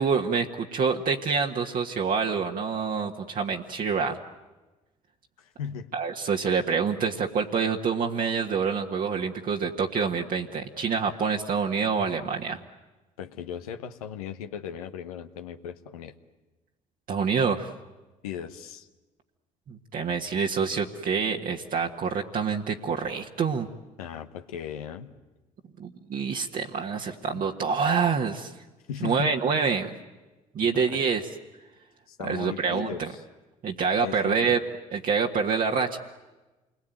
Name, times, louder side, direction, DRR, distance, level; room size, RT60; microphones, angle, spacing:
voice 1, 0.0-4.2 5.9-12.6 17.1-17.7 19.7-23.7 25.8-28.5 29.0-29.9 30.5-31.3 32.2-33.1 33.6-34.6 34.9-36.0, right 5 dB, 50° right, 0 dB, 1.6 m, -26 dB
voice 2, 5.4-5.9 13.2-16.1 18.2-18.9 24.0-25.1 27.3-27.4 28.9-29.4 30.6-31.0 32.1-33.2 34.0-34.6, left 8 dB, 90° left, 7 dB, 1.1 m, -37 dB
28.0 x 21.0 x 9.3 m, 1.1 s
hypercardioid pair, 60°, 18 cm